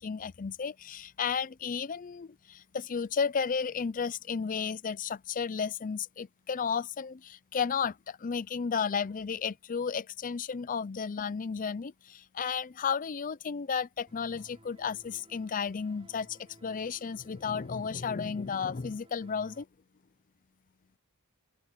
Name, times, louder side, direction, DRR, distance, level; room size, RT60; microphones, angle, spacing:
voice 1, 0.0-19.7, left 6 dB, 35° left, 0.5 m, -33 dB
sound 1, 14.1-19.6, right 1 dB, 25° right, 4.8 m, -58 dB
open air
head